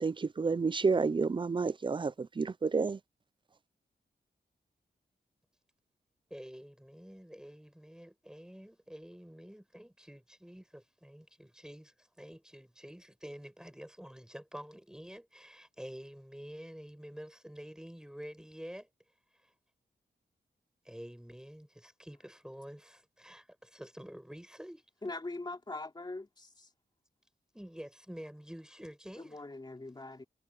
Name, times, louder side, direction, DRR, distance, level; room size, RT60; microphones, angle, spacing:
voice 1, 0.0-3.0, right 4 dB, 25° right, 0.4 m, -30 dB
voice 2, 6.3-18.9 19.3-19.5 20.8-24.8 27.5-29.4, equal, 5° right, 7.1 m, -48 dB
voice 3, 25.0-26.7 29.2-30.2, left 2 dB, 25° left, 3.1 m, -42 dB
wide cardioid pair, 135°, 19 cm